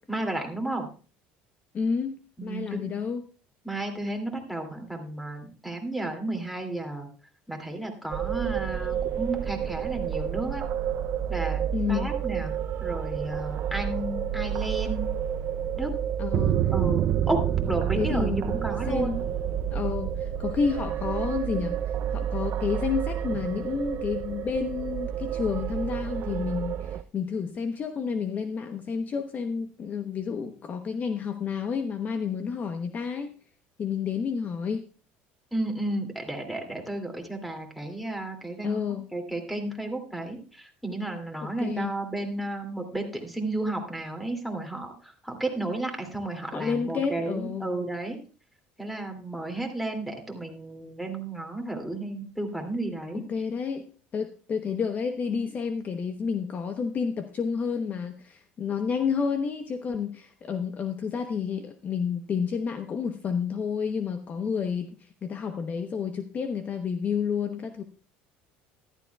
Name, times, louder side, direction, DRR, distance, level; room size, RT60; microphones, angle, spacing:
voice 1, 0.1-0.9 2.4-2.9 3.6-7.1 7.5-10.6 11.3-15.1 15.8-15.9 16.7-17.4 17.7-19.2 35.5-48.2 48.8-53.2, right 2 dB, ahead, 4 dB, 2.5 m, -33 dB
voice 2, 1.7-3.2 11.7-12.1 16.2-16.6 18.0-18.6 18.9-19.2 19.7-21.8 22.1-33.3 33.8-34.8 38.6-39.1 41.6-41.9 46.5-47.7 53.1-53.9 54.1-67.8, left 6 dB, 40° left, 8 dB, 0.9 m, -30 dB
sound 1, 8.1-27.0, right 9 dB, 55° right, 0.5 m, -29 dB
14.0 x 12.0 x 2.3 m, 0.37 s
supercardioid pair, 100°, 4 cm